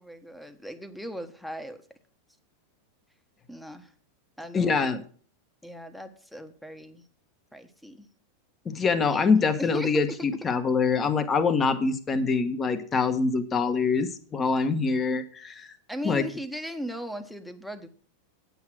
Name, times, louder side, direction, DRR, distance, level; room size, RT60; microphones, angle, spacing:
voice 1, 0.0-1.8 3.5-3.9 4.4-5.0 5.6-7.0 7.5-8.1 9.1-9.3 9.6-10.2 15.9-17.9, equal, ahead, 9 dB, 1.3 m, -38 dB
voice 2, 4.5-5.0 8.6-15.7 16.0-16.2, left 4 dB, 25° left, 10 dB, 1.4 m, -24 dB
8.6 x 8.2 x 6.1 m, 0.43 s
hypercardioid pair, 115°, 0 cm